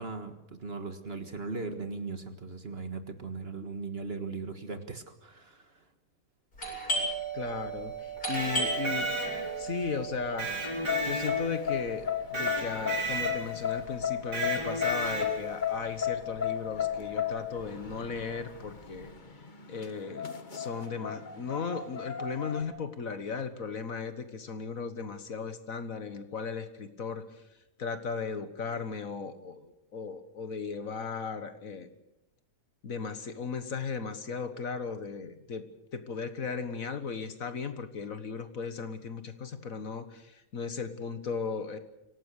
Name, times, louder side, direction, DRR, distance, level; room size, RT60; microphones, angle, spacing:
voice 1, 0.0-5.6, right 4 dB, 40° right, 8 dB, 1.8 m, -38 dB
Doorbell, 6.6-16.0 16.2-16.3 16.9-17.3 17.6-19.0, right 2 dB, 80° left, 8.4 m, -37 dB
voice 2, 7.3-9.1 9.6-10.5 11.0-19.1 19.7-27.3 27.8-31.9 32.8-35.6 35.9-41.8, left 5 dB, 60° left, 10 dB, 1.8 m, -36 dB
Electric guitar, 8.2-9.7 10.4-11.8 12.3-13.6 14.3-15.6, right 2 dB, 90° right, 5.4 m, -34 dB
sound 1, 10.7-22.6, left 9 dB, 30° left, 1.5 m, -34 dB
25.5 x 18.0 x 6.6 m, 0.87 s
omnidirectional pair, 1.7 m